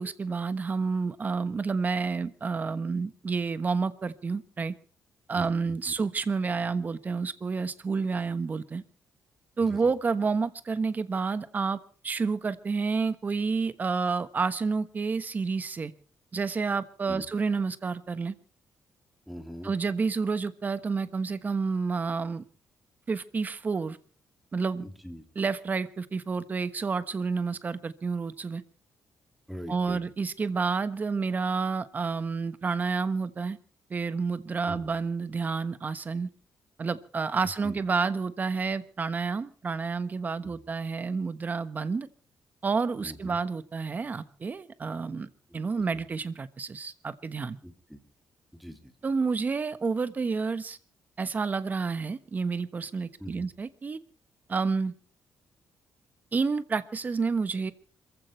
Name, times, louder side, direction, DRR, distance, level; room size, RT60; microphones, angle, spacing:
voice 1, 0.0-4.7 5.3-8.8 9.6-11.8 12.0-15.9 16.3-18.3 19.6-22.4 23.1-24.0 24.5-24.9 25.3-28.6 29.7-33.6 33.9-36.3 36.8-42.1 42.6-47.6 49.0-50.8 51.2-54.0 54.5-54.9 56.3-57.7, right 4 dB, 30° right, 13 dB, 1.2 m, -29 dB
voice 2, 5.3-5.9 9.6-9.9 17.1-17.2 19.3-19.7 24.8-25.2 29.5-30.0 34.7-34.9 37.6-37.8 40.4-40.6 43.0-43.4 45.9-46.0 47.6-48.0 48.5-48.9 53.2-53.5, equal, ahead, 6 dB, 2.9 m, -42 dB
27.5 x 15.0 x 3.2 m, 0.41 s
cardioid pair, 125°, 6 cm